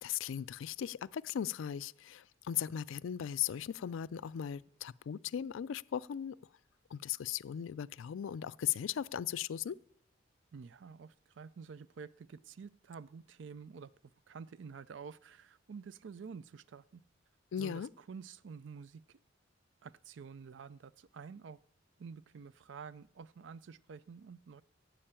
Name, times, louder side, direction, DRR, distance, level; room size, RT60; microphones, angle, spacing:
voice 1, 0.0-6.4 6.9-9.8 17.5-17.9, left 9 dB, 80° left, 0.3 m, -38 dB
voice 2, 10.5-13.9 14.3-17.0 17.6-19.2 19.8-21.6 22.0-24.6, right 5 dB, 65° right, 0.4 m, -49 dB
9.9 x 7.7 x 8.8 m
head